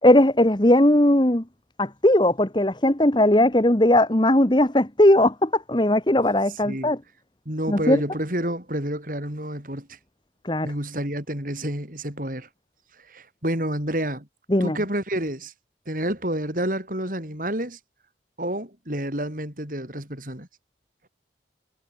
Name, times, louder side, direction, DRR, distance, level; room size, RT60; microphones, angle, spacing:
voice 1, 0.0-1.4 1.8-7.0 7.7-8.0 10.4-10.7 14.5-14.8, left 1 dB, 25° left, 1.3 m, -18 dB
voice 2, 7.5-10.0 10.6-12.5 13.1-14.3 14.6-15.5 15.9-17.8 18.4-20.5, right 1 dB, 45° right, 5.3 m, -29 dB
head